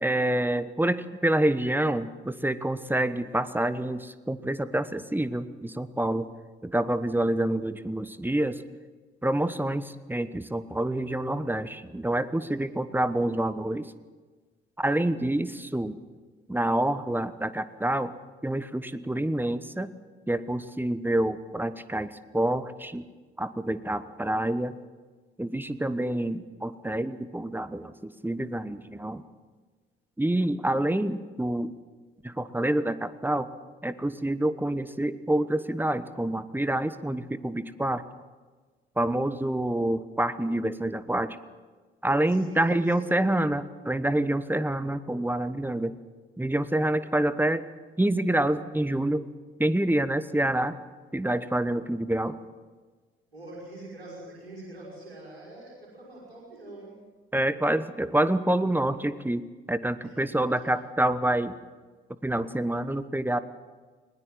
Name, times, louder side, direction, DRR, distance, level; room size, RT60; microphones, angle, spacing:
voice 1, 0.0-6.3 6.6-8.6 9.2-13.9 14.8-16.0 16.5-18.1 18.4-19.9 20.3-23.1 23.4-24.8 25.4-29.2 30.2-31.8 32.2-33.5 33.8-38.0 39.0-41.4 42.0-46.0 46.4-47.6 48.0-49.3 49.6-50.8 51.1-52.4 57.3-61.5 62.2-63.4, right 1 dB, 5° right, 14 dB, 1.1 m, -27 dB
voice 2, 42.3-43.2 53.3-57.1 60.0-60.3, right 2 dB, 85° right, -6 dB, 5.8 m, -44 dB
20.5 x 20.0 x 7.5 m, 1.4 s
figure-of-eight pair, 40°, 29 cm